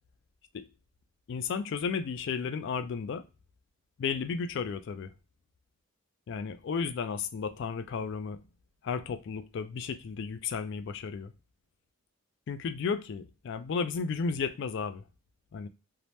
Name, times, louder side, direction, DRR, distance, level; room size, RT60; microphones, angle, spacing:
voice 1, 1.3-3.3 4.0-5.1 6.3-8.4 8.8-11.3 12.5-15.0 15.5-15.7, left 5 dB, 55° left, 0.3 m, -33 dB
2.7 x 2.0 x 3.2 m
head